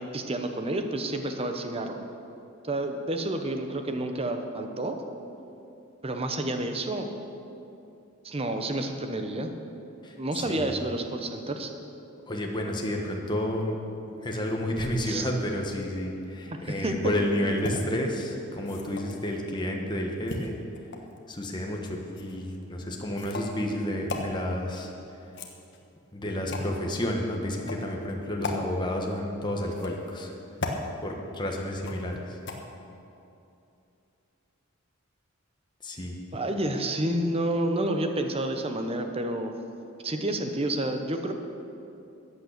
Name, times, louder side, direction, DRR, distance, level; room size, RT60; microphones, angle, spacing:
voice 1, 0.0-2.0 2.6-5.0 6.0-7.1 8.2-9.5 10.2-11.7 15.0-15.3 16.6-17.0 36.3-39.5 40.0-41.3, right 1 dB, 25° right, 6 dB, 0.9 m, -29 dB
voice 2, 10.0-10.6 12.3-13.8 14.2-20.5 21.3-24.9 26.1-30.3 31.0-32.4 35.8-36.1, left 1 dB, 20° left, 0 dB, 1.4 m, -31 dB
sound 1, 17.6-17.7 18.6-19.3 20.3-21.2 22.2-22.4 23.2-23.5 24.1-24.3 25.2-25.9 26.5-26.7 27.6-27.8 28.4-28.6 29.7-30.1 30.6-30.8 31.8-32.1 32.5-32.6, left 3 dB, 55° left, 1.3 m, -35 dB
14.0 x 9.0 x 6.7 m, 2.7 s
head